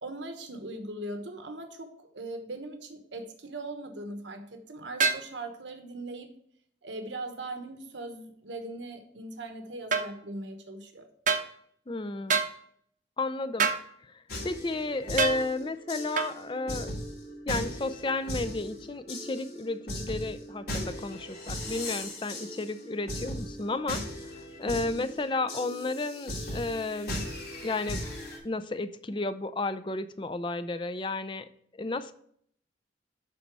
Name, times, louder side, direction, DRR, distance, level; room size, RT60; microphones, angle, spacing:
voice 1, 0.0-6.3 6.8-11.1 24.6-25.0, right 2 dB, 85° right, 5 dB, 1.2 m, -40 dB
sound 1, 5.0-5.3 9.9-10.1 11.3-11.5 12.3-12.5 13.6-13.8 15.2-15.4 16.2-16.3, right 5 dB, 45° right, 0.7 m, -25 dB
voice 2, 11.9-12.4 13.2-13.7 14.0-16.9 17.5-27.2 27.6-28.0 28.4-31.5 31.7-32.1, left 2 dB, 25° left, 12 dB, 0.5 m, -33 dB
sound 2, 14.3-28.4, left 1 dB, 60° left, 3.2 m, -38 dB
11.5 x 4.1 x 4.7 m, 0.64 s
head